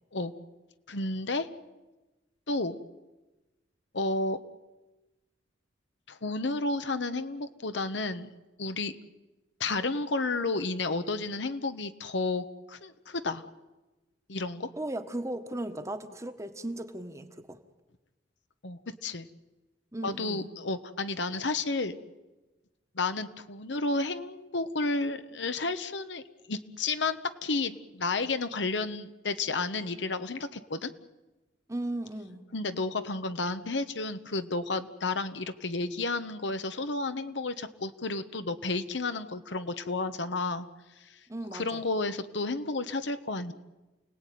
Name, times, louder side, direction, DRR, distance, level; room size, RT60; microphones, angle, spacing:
voice 1, 0.9-1.5 2.5-2.8 3.9-4.4 6.1-8.3 8.6-9.0 9.6-13.4 14.3-14.7 18.6-19.3 20.0-22.0 22.9-26.2 26.5-30.9 32.5-40.7 41.5-43.5, left 3 dB, 70° left, 10 dB, 1.2 m, -31 dB
voice 2, 14.8-17.6 19.9-20.5 31.7-32.4 41.3-41.8, right 1 dB, 15° right, 8 dB, 1.5 m, -36 dB
29.0 x 18.5 x 9.4 m, 1.1 s
head